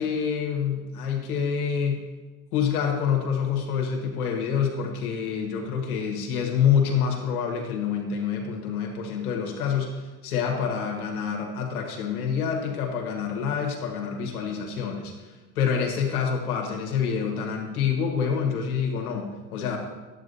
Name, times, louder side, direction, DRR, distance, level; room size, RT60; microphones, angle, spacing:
voice 1, 0.0-2.0 2.5-19.8, left 7 dB, 80° left, 1 dB, 1.6 m, -27 dB
10.5 x 8.6 x 2.7 m, 1.3 s
hypercardioid pair, 90°, 44 cm